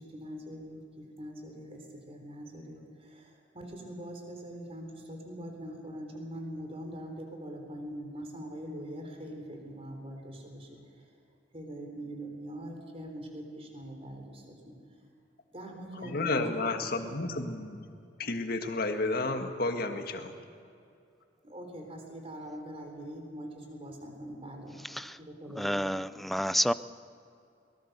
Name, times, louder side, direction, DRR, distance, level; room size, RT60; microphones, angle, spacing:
voice 1, 0.0-11.1 11.5-14.8 15.5-16.7 21.4-24.8 25.3-26.0, equal, 35° right, 3.8 m, -43 dB
voice 2, 16.0-17.9 18.2-20.3, left 2 dB, 55° left, 1.8 m, -31 dB
voice 3, 24.8-25.2 25.5-26.7, equal, ahead, 0.4 m, -29 dB
22.5 x 20.5 x 6.8 m
head